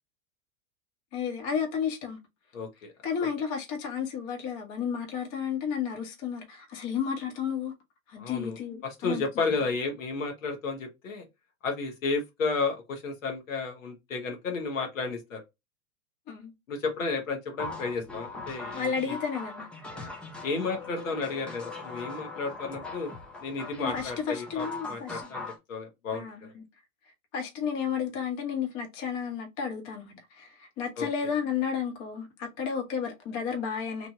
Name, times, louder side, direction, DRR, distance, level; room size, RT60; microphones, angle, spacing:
voice 1, 1.1-2.2 3.0-7.7 8.1-9.4 16.3-16.5 18.7-19.7 23.8-25.2 26.1-26.6 27.3-34.1, left 7 dB, 40° left, 1.2 m, -32 dB
voice 2, 2.5-2.9 8.2-8.6 8.8-11.2 11.6-15.4 16.7-19.2 19.9-20.1 20.4-23.1 23.4-26.5 31.0-31.1, left 4 dB, 80° left, 1.2 m, -32 dB
sound 1, 17.6-25.6, left 3 dB, 5° left, 0.4 m, -40 dB
3.1 x 2.6 x 2.5 m
hypercardioid pair, 110°, 40 cm